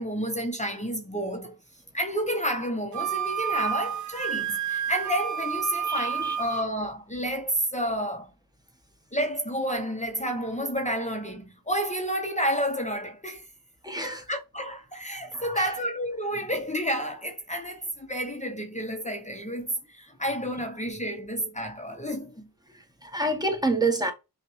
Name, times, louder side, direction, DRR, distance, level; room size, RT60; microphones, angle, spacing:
voice 1, 0.0-1.5 1.9-8.3 9.1-13.4 14.0-22.5, equal, 20° left, 0.8 m, -30 dB
Wind instrument woodwind instrument, 2.9-6.7, right 8 dB, 55° right, 0.5 m, -30 dB
voice 2, 5.8-6.4 13.8-14.3 15.3-15.8 21.9-22.0 22.7-24.1, right 2 dB, 10° right, 1.1 m, -29 dB
5.9 x 2.4 x 3.1 m
wide cardioid pair, 90°, 36 cm